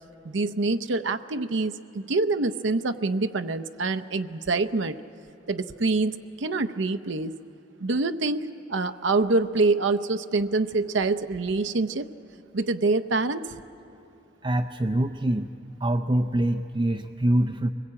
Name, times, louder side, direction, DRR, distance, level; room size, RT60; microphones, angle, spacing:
voice 1, 0.2-5.0 5.5-7.3 7.8-12.1 12.5-13.6, right 3 dB, 70° right, 10 dB, 0.7 m, -26 dB
voice 2, 14.4-15.5 15.8-17.7, right 1 dB, 25° right, 4 dB, 0.5 m, -24 dB
24.0 x 21.0 x 8.6 m, 2.5 s
head